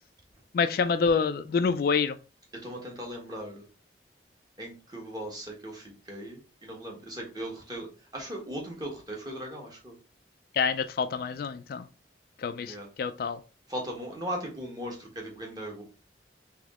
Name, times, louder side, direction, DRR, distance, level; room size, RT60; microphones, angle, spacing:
voice 1, 0.5-2.2 10.6-11.8 12.4-13.4, left 5 dB, 55° left, 0.3 m, -27 dB
voice 2, 2.6-3.7 4.6-9.9 12.7-12.9 13.7-15.8, equal, 25° right, 1.2 m, -38 dB
3.4 x 3.1 x 3.6 m
head